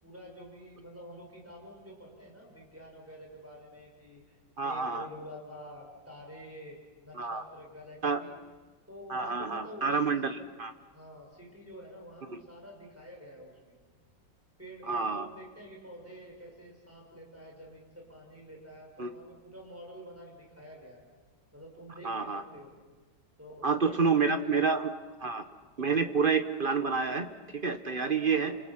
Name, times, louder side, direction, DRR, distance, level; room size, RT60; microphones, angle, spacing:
voice 1, 0.0-8.4 8.9-10.4 10.9-13.8 14.6-21.0 21.5-22.7 23.4-24.5 28.0-28.6, equal, 5° right, -2 dB, 6.0 m, -48 dB
voice 2, 4.6-5.0 7.1-7.4 8.0-8.2 9.1-10.7 12.3-12.4 14.9-15.3 19.0-19.1 22.0-22.4 23.6-24.9 25.2-25.4 25.8-28.5, right 5 dB, 40° right, 9 dB, 0.9 m, -28 dB
29.0 x 27.0 x 5.9 m, 1.3 s
omnidirectional pair, 2.0 m